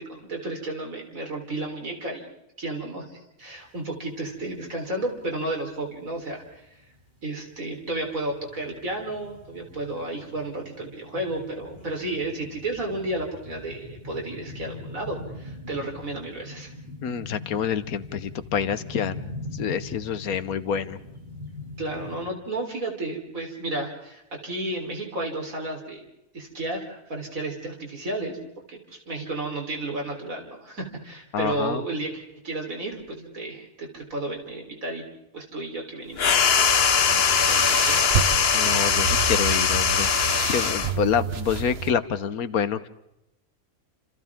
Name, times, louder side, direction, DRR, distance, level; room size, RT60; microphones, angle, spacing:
voice 1, 0.0-2.3 2.6-6.7 7.2-16.7 21.8-26.0 26.3-28.4 28.7-35.0 35.3-36.7 37.0-38.1, right 2 dB, 65° right, 1 dB, 4.3 m, -32 dB
sound 1, 3.6-3.7 4.0-22.2, left 2 dB, 30° right, 3.0 m, -42 dB
voice 2, 17.0-19.2 19.5-21.0 31.3-31.8 37.1-37.2 38.5-40.1 40.4-42.9, left 7 dB, 80° left, 13 dB, 1.4 m, -27 dB
sound 2, 36.2-41.0, left 6 dB, 50° left, 1.0 m, -21 dB
sound 3, 36.7-41.9, right 7 dB, 50° right, 1.0 m, -30 dB
29.5 x 28.0 x 3.6 m, 0.86 s
omnidirectional pair, 1.5 m